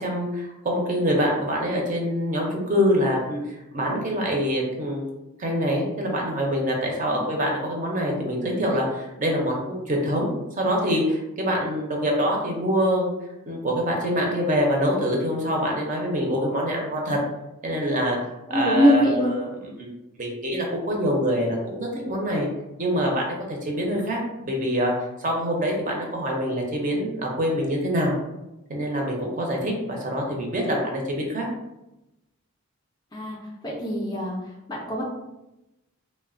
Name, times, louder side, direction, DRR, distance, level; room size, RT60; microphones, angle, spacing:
voice 1, 0.0-5.0 5.4-10.3 10.6-13.1 13.5-17.2 17.6-18.2 18.5-19.5 19.8-19.9 20.2-22.5 22.8-24.9 25.2-28.1 28.7-31.5, equal, 35° right, 0 dB, 0.5 m, -25 dB
voice 2, 7.0-7.3 18.5-19.3 33.1-33.4 33.6-34.4 34.7-35.0, equal, 20° left, -3 dB, 0.4 m, -22 dB
3.1 x 2.1 x 2.4 m, 0.95 s
head